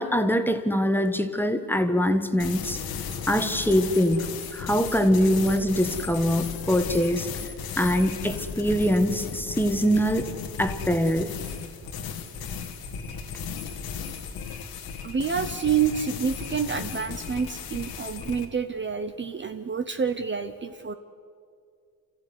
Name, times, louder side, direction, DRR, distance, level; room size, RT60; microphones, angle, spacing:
voice 1, 0.0-2.8 3.3-7.3 7.8-10.3 10.6-11.3, equal, 5° left, 8 dB, 1.5 m, -23 dB
sound 1, 2.4-18.5, left 6 dB, 85° left, 1.8 m, -35 dB
voice 2, 15.0-20.9, right 6 dB, 30° right, 8 dB, 0.9 m, -28 dB
28.0 x 14.5 x 9.6 m, 2.3 s
cardioid pair, 100°, 36 cm